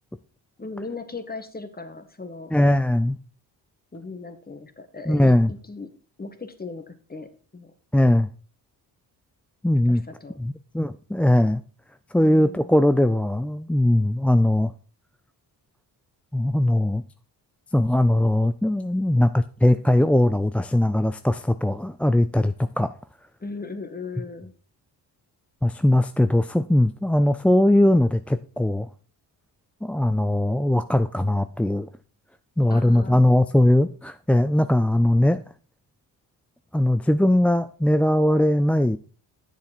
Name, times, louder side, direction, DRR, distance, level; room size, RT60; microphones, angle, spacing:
voice 1, 0.6-2.5 3.9-5.9 6.2-7.7 9.9-10.4 12.2-12.8 23.4-24.5 32.7-33.2, left 3 dB, 20° left, 1.5 m, -38 dB
voice 2, 2.5-3.2 5.1-5.5 7.9-8.3 9.6-10.0 10.4-11.6 12.1-14.7 16.3-17.0 17.7-22.9 25.6-28.9 29.8-31.9 32.6-35.4 36.7-39.0, left 1 dB, 5° left, 0.3 m, -20 dB
9.0 x 7.1 x 4.2 m
supercardioid pair, 65°, 43 cm